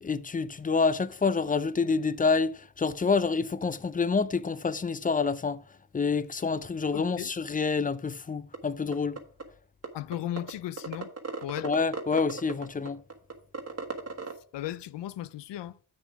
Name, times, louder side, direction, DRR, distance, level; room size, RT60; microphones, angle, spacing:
voice 1, 0.0-5.6 5.9-9.2 11.6-13.0, left 4 dB, 20° left, 0.4 m, -27 dB
voice 2, 6.9-7.3 9.9-11.1 11.4-11.7 14.5-15.7, left 12 dB, 85° left, 0.6 m, -36 dB
sound 1, 8.5-8.6 8.9-9.4 9.8-9.9 10.1-10.5 10.8-14.3, right 4 dB, 35° right, 1.4 m, -35 dB
7.5 x 6.7 x 4.7 m
cardioid pair, 110°, 41 cm